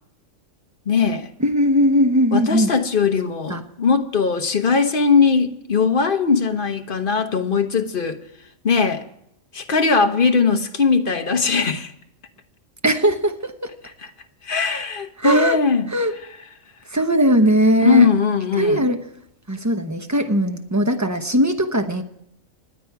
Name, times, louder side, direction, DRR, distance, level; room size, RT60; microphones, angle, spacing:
voice 1, 0.9-1.3 2.3-8.2 8.6-9.0 9.5-11.9 14.4-15.9 17.8-18.9, left 5 dB, 45° left, 1.2 m, -19 dB
voice 2, 1.4-2.7 3.5-3.6 12.8-13.5 15.2-15.6 15.9-16.1 16.9-18.1 18.6-19.0 19.5-22.0, equal, 15° right, 0.9 m, -19 dB
27.0 x 9.4 x 4.7 m
omnidirectional pair, 1.3 m